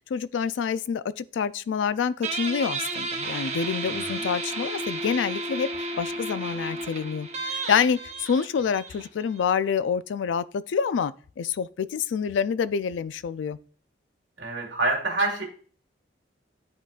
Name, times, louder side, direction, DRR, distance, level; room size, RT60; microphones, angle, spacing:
voice 1, 0.1-13.6, left 6 dB, 85° left, 0.3 m, -27 dB
Guitar, 2.2-9.4, right 2 dB, 35° right, 0.7 m, -32 dB
voice 2, 3.9-4.2 14.4-15.4, right 2 dB, 75° right, 1.8 m, -27 dB
10.5 x 3.8 x 2.4 m
head